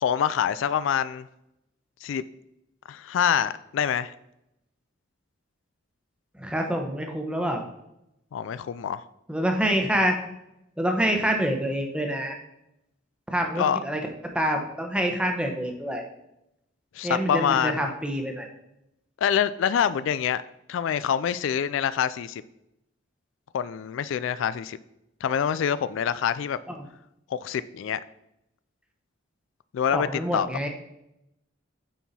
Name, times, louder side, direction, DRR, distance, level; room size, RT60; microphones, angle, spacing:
voice 1, 0.0-1.3 2.0-2.2 2.9-4.1 8.3-9.0 13.6-13.8 16.9-17.9 19.2-20.4 20.7-22.4 23.5-24.8 25.2-26.6 27.3-28.0 29.7-30.1 30.3-30.5, left 8 dB, 70° left, 15 dB, 0.3 m, -25 dB
voice 2, 6.4-7.6 9.3-10.2 10.8-12.4 13.3-16.0 17.0-18.5 26.7-26.8 29.9-30.7, equal, 5° right, 3 dB, 0.9 m, -26 dB
9.0 x 4.6 x 4.2 m, 0.83 s
head